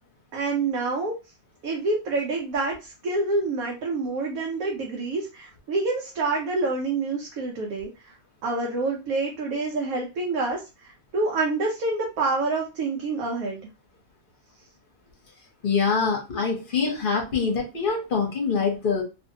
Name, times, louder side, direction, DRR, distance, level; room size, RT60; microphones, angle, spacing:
voice 1, 0.3-1.1 1.6-7.9 8.4-13.6, right 3 dB, 75° right, -1 dB, 1.1 m, -27 dB
voice 2, 15.6-19.0, left 5 dB, 45° left, 1 dB, 0.8 m, -24 dB
2.6 x 2.5 x 2.6 m, 0.28 s
omnidirectional pair, 1.5 m